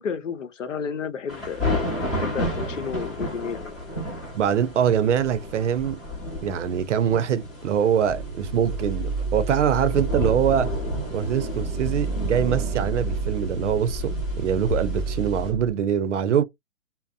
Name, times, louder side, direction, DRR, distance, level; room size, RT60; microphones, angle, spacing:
voice 1, 0.0-1.8 2.1-3.8, left 6 dB, 75° left, 0.7 m, -32 dB
sound 1, 1.3-15.5, left 1 dB, 15° left, 0.8 m, -32 dB
voice 2, 4.3-6.0 6.4-10.7 11.1-16.4, right 8 dB, 70° right, 0.5 m, -23 dB
sound 2, 8.0-15.7, right 4 dB, 25° right, 0.5 m, -30 dB
2.6 x 2.0 x 2.3 m
hypercardioid pair, 160°, 37 cm